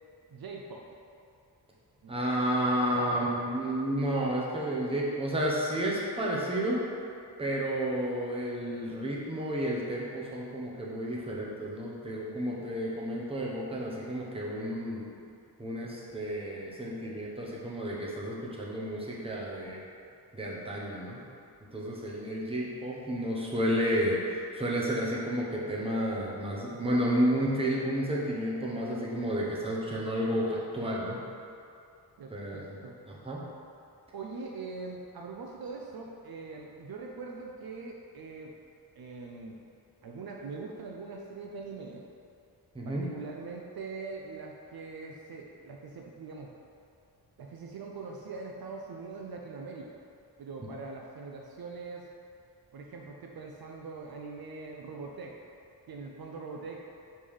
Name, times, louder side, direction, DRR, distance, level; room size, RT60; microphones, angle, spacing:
voice 1, 0.3-0.8 2.0-2.2 2.9-3.4 32.2-33.0 34.1-38.5 39.0-39.6 40.0-42.0 42.8-46.5 47.4-50.0 50.4-52.1 52.7-55.4 55.9-56.9, right 4 dB, 60° right, 0 dB, 0.5 m, -42 dB
voice 2, 2.1-6.8 7.4-15.0 15.6-19.8 20.3-21.2 21.7-31.2 32.3-32.6 33.1-33.4 42.7-43.1, equal, 15° right, -5 dB, 0.8 m, -31 dB
5.2 x 3.4 x 5.4 m, 2.5 s
wide cardioid pair, 160°, 41 cm